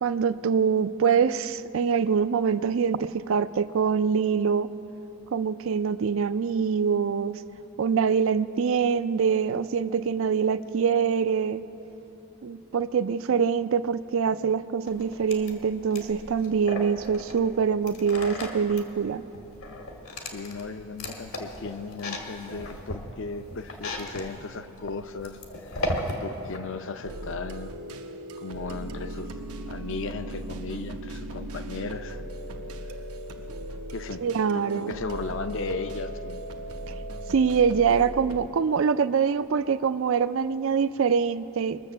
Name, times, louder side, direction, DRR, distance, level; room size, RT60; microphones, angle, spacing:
voice 1, 0.0-4.7 5.3-7.4 7.8-11.6 12.4-19.2 34.2-34.9 37.3-41.8, right 6 dB, 65° right, 14 dB, 0.4 m, -24 dB
sound 1, 14.9-26.6, left 1 dB, 75° left, 1.7 m, -36 dB
voice 2, 20.3-25.8 26.2-27.7 28.4-29.4 29.6-32.2 33.9-34.3 34.5-36.4, left 4 dB, 55° left, 10 dB, 0.6 m, -36 dB
sound 2, 27.0-38.5, right 1 dB, 85° right, 0.8 m, -37 dB
22.0 x 7.3 x 6.8 m, 3.0 s
head